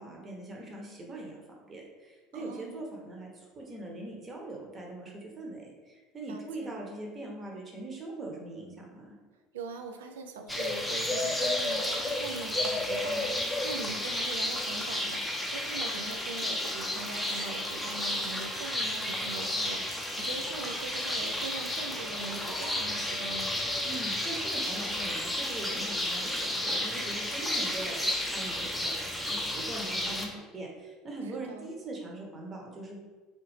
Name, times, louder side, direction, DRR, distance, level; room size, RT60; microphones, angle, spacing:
voice 1, 0.0-9.1 23.8-33.0, right 2 dB, 30° right, -1 dB, 0.9 m, -41 dB
voice 2, 2.3-2.9 6.3-6.8 9.5-23.5 31.3-31.8, right 3 dB, 70° right, 5 dB, 0.3 m, -42 dB
sound 1, 10.5-30.3, left 1 dB, 5° left, 0.6 m, -32 dB
3.0 x 2.6 x 3.2 m, 1.3 s
figure-of-eight pair, 65°, 0 cm